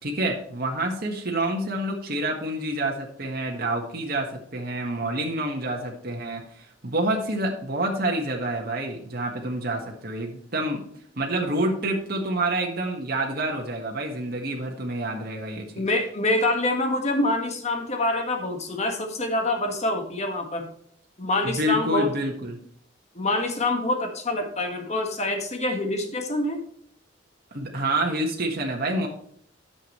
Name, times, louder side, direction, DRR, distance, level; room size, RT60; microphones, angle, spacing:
voice 1, 0.0-10.8 11.2-15.7 21.4-22.6 27.5-29.1, right 1 dB, 55° right, 0 dB, 1.5 m, -28 dB
voice 2, 15.7-20.7 21.2-22.1 23.1-26.6, left 2 dB, 35° left, 4 dB, 1.6 m, -26 dB
10.5 x 7.2 x 3.1 m, 0.65 s
head